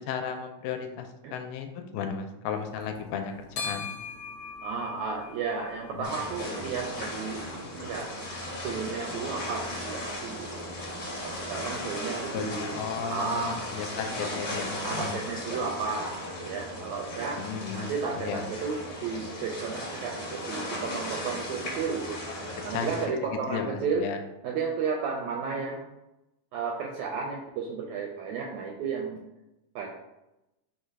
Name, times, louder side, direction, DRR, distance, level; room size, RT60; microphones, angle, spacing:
voice 1, 0.0-3.3 3.6-3.9 5.9-6.1 12.3-15.2 17.4-18.4 22.7-22.9 23.2-24.2, left 7 dB, 80° left, 5 dB, 2.0 m, -34 dB
sound 1, 2.6-15.1, left 4 dB, 65° left, 1.5 m, -45 dB
voice 2, 4.6-8.1 8.6-10.6 11.2-13.6 14.8-17.4 17.7-22.2 22.6-24.0 24.4-25.9 26.5-29.2 29.7-29.9, right 5 dB, 80° right, 0 dB, 1.6 m, -33 dB
sound 2, 6.0-23.1, left 1 dB, 40° left, 1.3 m, -36 dB
5.0 x 2.3 x 4.5 m, 0.94 s
omnidirectional pair, 3.7 m